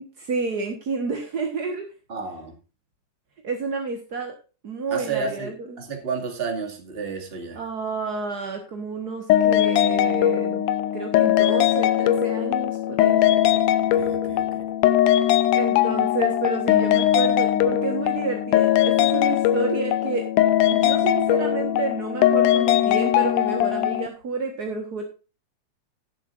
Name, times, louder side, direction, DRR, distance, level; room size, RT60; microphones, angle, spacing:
voice 1, 0.2-1.9 3.4-4.4 4.6-5.5 7.5-10.7 10.9-13.2 15.1-20.3 20.7-25.0, right 4 dB, 45° right, 1.4 m, -30 dB
voice 2, 2.1-2.6 4.9-7.6 13.9-14.7, right 5 dB, 20° right, 2.0 m, -31 dB
sound 1, 9.3-24.1, left 12 dB, 85° left, 2.3 m, -20 dB
17.5 x 7.5 x 2.5 m
omnidirectional pair, 3.6 m